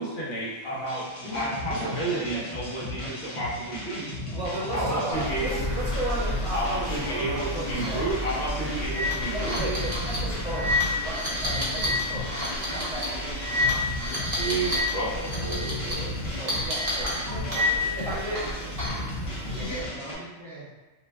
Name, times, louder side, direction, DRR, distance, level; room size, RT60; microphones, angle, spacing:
voice 1, 0.0-4.1 4.7-5.7 6.5-9.8 14.4-16.2, right 2 dB, 60° left, -6 dB, 1.0 m, -31 dB
sound 1, 0.9-20.1, left 1 dB, 35° left, 0.6 m, -36 dB
voice 2, 1.2-2.4 3.0-3.1 4.8-5.1 9.0-9.1 12.7-12.8 15.9-16.6 17.0-18.6 19.5-20.6, equal, ahead, -11 dB, 0.8 m, -38 dB
voice 3, 4.3-8.1 9.3-14.8 16.3-17.1 18.0-18.5 19.6-19.7, right 1 dB, 65° right, -9 dB, 1.3 m, -35 dB
sound 2, 5.1-19.8, equal, 90° left, 1.1 m, -35 dB
sound 3, 7.6-7.9 8.2-8.3 8.8-14.9 15.2-15.9 16.5-18.0 18.4-19.1, left 2 dB, 35° right, 0.8 m, -29 dB
2.6 x 2.2 x 3.2 m, 1.2 s
omnidirectional pair, 1.3 m